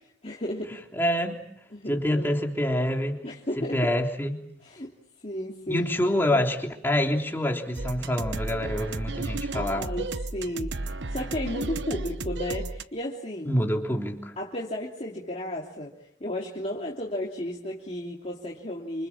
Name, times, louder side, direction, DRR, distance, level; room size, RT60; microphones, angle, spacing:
voice 1, 0.2-0.8 1.7-2.3 3.2-4.0 4.6-4.9 5.2-5.9 9.5-13.5 14.4-19.1, left 1 dB, 35° left, -3 dB, 3.1 m, -33 dB
voice 2, 0.9-1.4 1.9-3.2 3.6-4.4 5.7-9.9 13.5-14.3, left 1 dB, 10° left, 1 dB, 3.4 m, -26 dB
sound 1, 7.8-12.8, right 2 dB, 70° right, 1.1 m, -33 dB
29.0 x 27.5 x 7.3 m, 0.75 s
head